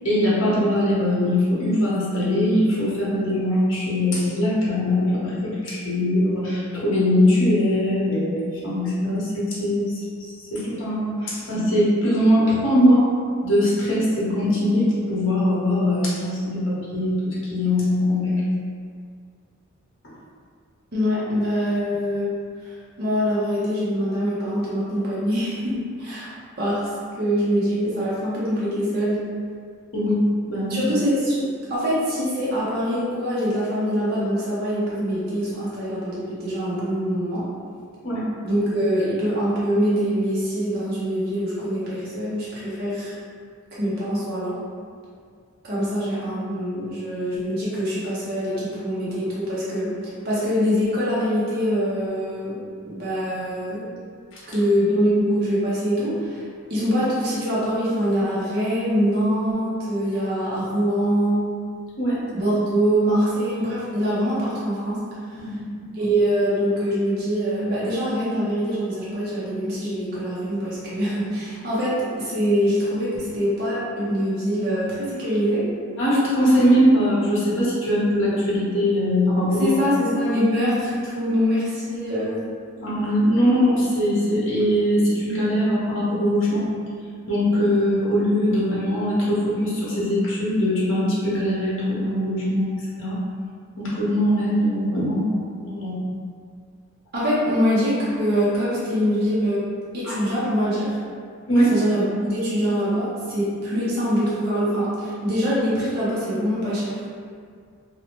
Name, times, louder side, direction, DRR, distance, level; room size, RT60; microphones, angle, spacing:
voice 1, 0.0-10.0 10.5-13.1 13.4-18.4 29.9-30.2 30.5-30.8 38.0-38.3 54.3-54.4 62.0-62.2 65.4-65.5 65.8-65.9 76.0-79.7 82.8-86.7 87.3-92.7 93.0-93.2 93.8-96.0 100.0-100.1 101.5-101.7, equal, 60° left, -8 dB, 0.8 m, -21 dB
voice 2, 20.9-22.3 22.6-26.3 26.6-26.9 27.2-29.2 30.7-37.5 38.4-43.2 43.8-44.6 45.6-50.0 50.2-53.9 54.5-56.4 56.7-61.5 62.3-65.4 65.9-75.7 79.6-82.4 97.1-99.7 99.9-100.9 101.7-107.0, equal, 45° right, -9 dB, 0.6 m, -24 dB
2.7 x 2.0 x 2.9 m, 2.1 s
head